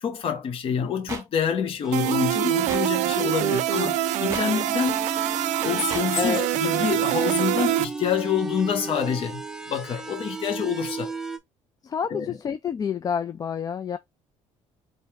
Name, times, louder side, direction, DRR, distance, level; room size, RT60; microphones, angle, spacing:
voice 1, 0.0-5.0 5.6-9.4 9.7-11.1 12.1-12.4, left 7 dB, 50° left, 1.1 m, -27 dB
sound 1, 1.1-1.2 2.7-2.8 4.3-4.4 5.9-6.0, right 3 dB, 25° right, 1.5 m, -33 dB
sound 2, 1.8-11.4, right 3 dB, 5° right, 0.7 m, -35 dB
sound 3, 1.9-7.8, right 15 dB, 75° right, 0.5 m, -25 dB
voice 2, 6.1-6.5 11.8-14.0, left 7 dB, 30° left, 0.4 m, -28 dB
4.2 x 2.6 x 3.4 m
cardioid pair, 105°, 12 cm